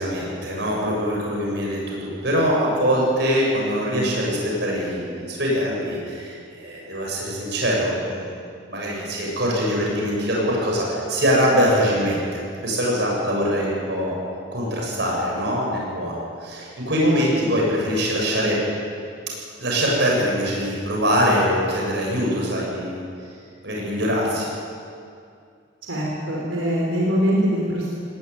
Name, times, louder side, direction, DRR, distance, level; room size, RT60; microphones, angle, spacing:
voice 1, 0.0-14.2 14.5-18.6 19.6-23.0 23.6-24.5, equal, 60° right, -3 dB, 7.5 m, -23 dB
voice 2, 25.8-27.9, equal, 85° right, -4 dB, 5.2 m, -23 dB
20.0 x 18.5 x 9.4 m, 2.4 s
head